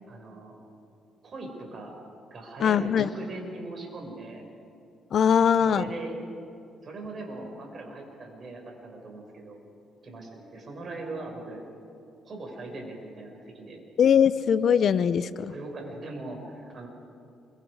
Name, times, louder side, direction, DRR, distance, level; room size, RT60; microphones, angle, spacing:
voice 1, 0.1-0.5 1.2-1.9 2.3-4.5 5.4-6.2 6.8-9.6 10.0-11.6 12.2-13.8 15.4-16.9, right 2 dB, 45° right, 1 dB, 5.8 m, -40 dB
voice 2, 2.6-3.1 5.1-5.8 14.0-15.3, left 8 dB, 60° left, 15 dB, 0.8 m, -21 dB
28.5 x 24.0 x 4.9 m, 2.6 s
cardioid pair, 90°, 0 cm